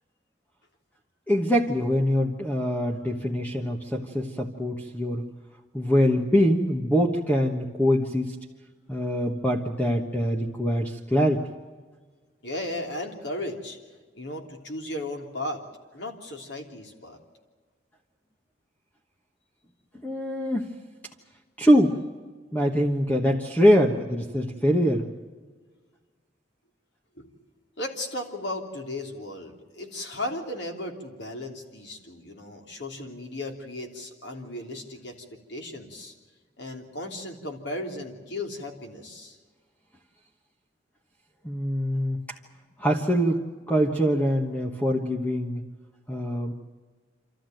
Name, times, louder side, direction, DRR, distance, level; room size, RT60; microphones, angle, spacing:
voice 1, 1.3-5.2 5.7-8.4 8.9-11.4 20.0-20.7 21.6-22.0 22.5-25.1 41.4-42.4 42.8-45.6 46.1-46.5, equal, 10° left, 1 dB, 1.3 m, -24 dB
voice 2, 12.4-13.8 14.1-15.6 15.9-17.2 27.2-27.3 27.8-36.1 36.6-39.4, left 1 dB, 75° left, 3 dB, 3.3 m, -35 dB
27.0 x 14.0 x 9.1 m, 1.4 s
head